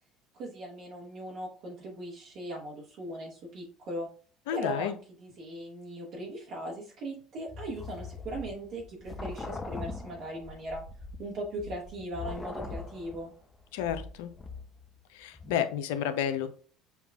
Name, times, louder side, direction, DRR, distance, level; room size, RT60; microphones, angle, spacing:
voice 1, 0.3-4.1 4.5-10.8 11.2-13.3, right 1 dB, 60° right, -3 dB, 1.0 m, -39 dB
voice 2, 4.5-5.0 13.7-14.3 15.1-16.5, left 9 dB, 80° left, 10 dB, 0.4 m, -31 dB
sound 1, 7.5-15.0 15.3-15.6, left 3 dB, 20° left, 0.6 m, -41 dB
6.9 x 2.3 x 2.3 m, 0.41 s
hypercardioid pair, 75°, 0 cm